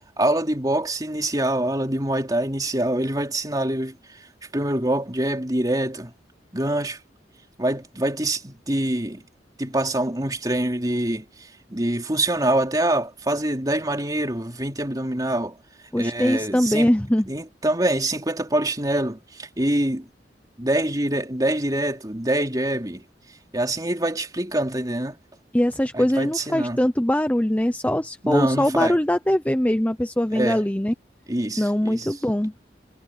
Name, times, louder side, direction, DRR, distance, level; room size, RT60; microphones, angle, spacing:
voice 1, 0.2-4.0 4.5-6.1 6.5-7.0 7.6-9.2 9.6-11.2 11.7-15.5 16.0-16.9 17.3-20.1 20.6-23.0 23.5-25.1 25.9-26.8 28.2-29.0 30.3-30.6 31.3-32.1, right 1 dB, 20° right, 3.3 m, -25 dB
voice 2, 15.9-17.3 25.5-30.9 31.6-32.6, left 1 dB, 10° left, 0.8 m, -22 dB
head